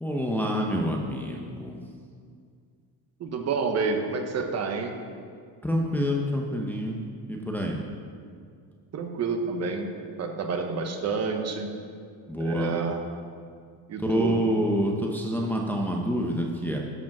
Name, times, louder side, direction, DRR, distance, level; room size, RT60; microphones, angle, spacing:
voice 1, 0.0-1.8 5.6-7.8 12.3-12.7 14.0-16.8, equal, 5° left, -1 dB, 0.7 m, -27 dB
voice 2, 3.2-5.0 8.9-11.7 12.4-13.0 13.9-14.4, right 4 dB, 35° right, 4 dB, 1.0 m, -29 dB
13.0 x 5.2 x 5.9 m, 2.2 s
cardioid pair, 150°, 43 cm